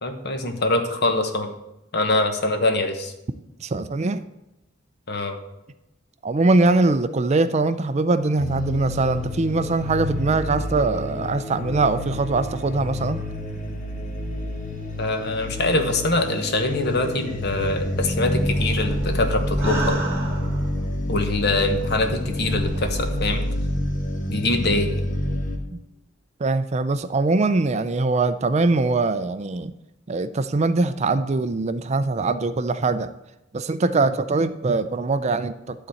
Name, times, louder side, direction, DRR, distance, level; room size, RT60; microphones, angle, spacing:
voice 1, 0.0-1.5 1.9-3.1 5.1-5.3 15.0-20.0 21.1-23.4 24.3-25.0, left 2 dB, 55° left, 6 dB, 1.2 m, -24 dB
voice 2, 3.6-4.2 6.2-13.2 25.7-25.8 26.4-29.7 30.1-33.1 33.5-35.9, right 3 dB, 35° right, 12 dB, 0.4 m, -22 dB
sound 1, 8.4-25.6, equal, 40° left, 1.5 m, -28 dB
sound 2, 17.8-21.0 21.6-23.4, right 1 dB, 15° right, 2.2 m, -33 dB
11.5 x 4.1 x 7.7 m, 0.91 s
head